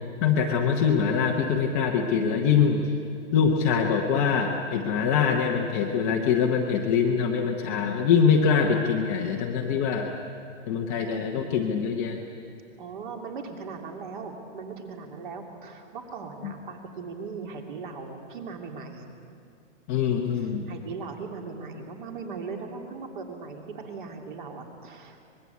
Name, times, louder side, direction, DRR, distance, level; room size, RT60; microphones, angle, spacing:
voice 1, 0.2-2.8 3.3-10.1 10.7-12.2 16.4-16.5 19.9-20.6, left 6 dB, 15° left, 0 dB, 0.8 m, -24 dB
voice 2, 12.8-19.1 20.3-25.2, right 4 dB, 40° right, 3 dB, 3.1 m, -39 dB
24.5 x 21.0 x 8.4 m, 2.4 s
hypercardioid pair, 175°, 36 cm